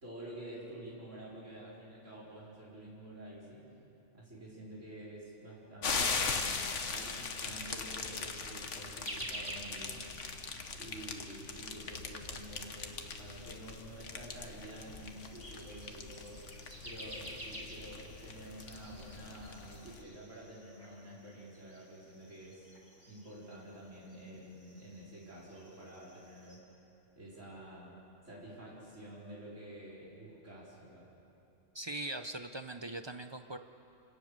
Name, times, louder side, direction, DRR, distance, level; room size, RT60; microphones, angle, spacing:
voice 1, 0.0-3.6 4.1-6.5 6.9-10.1 10.8-16.4 16.8-22.7 23.1-26.6 27.2-28.0 28.2-31.1, right 1 dB, 70° right, -6 dB, 4.9 m, -49 dB
sound 1, 5.8-20.0, left 5 dB, 65° left, 1.6 m, -40 dB
sound 2, 9.0-26.6, equal, 10° right, 3.3 m, -51 dB
voice 2, 31.7-33.6, right 2 dB, 35° right, 8 dB, 0.4 m, -41 dB
27.5 x 18.0 x 6.7 m, 2.7 s
omnidirectional pair, 1.3 m